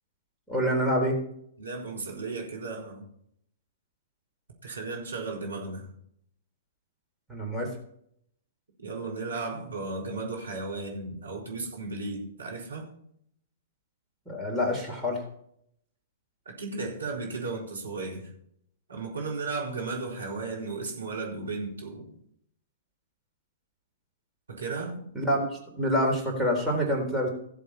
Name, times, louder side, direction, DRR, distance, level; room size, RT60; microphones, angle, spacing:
voice 1, 0.5-1.2 7.3-7.7 14.3-15.2 25.1-25.5 25.8-27.3, equal, ahead, -2 dB, 3.8 m, -26 dB
voice 2, 1.6-3.1 4.6-5.9 8.8-12.8 16.5-18.3 18.9-22.1 24.5-25.0, right 3 dB, 75° right, -1 dB, 4.2 m, -35 dB
17.0 x 7.5 x 4.3 m, 0.69 s
figure-of-eight pair, 110°, 0 cm